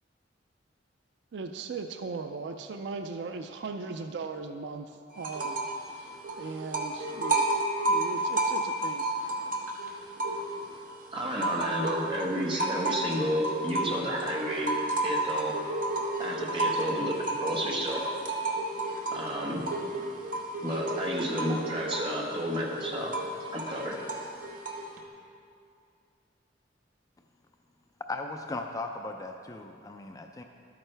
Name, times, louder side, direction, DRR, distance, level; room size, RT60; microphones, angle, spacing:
voice 1, 1.3-5.6 5.8-7.5 7.9-9.1, right 4 dB, 65° right, 7 dB, 0.4 m, -38 dB
sound 1, 5.2-5.8 6.1-10.7 11.1-25.0, right 2 dB, 50° right, 1.1 m, -32 dB
voice 2, 11.1-14.8 15.0-15.5 16.2-18.0 19.1-19.7 20.6-23.1 23.5-24.0, equal, 30° right, -2 dB, 1.4 m, -31 dB
voice 3, 28.1-30.4, left 2 dB, 20° left, 4 dB, 0.4 m, -37 dB
12.0 x 8.9 x 3.3 m, 2.4 s
head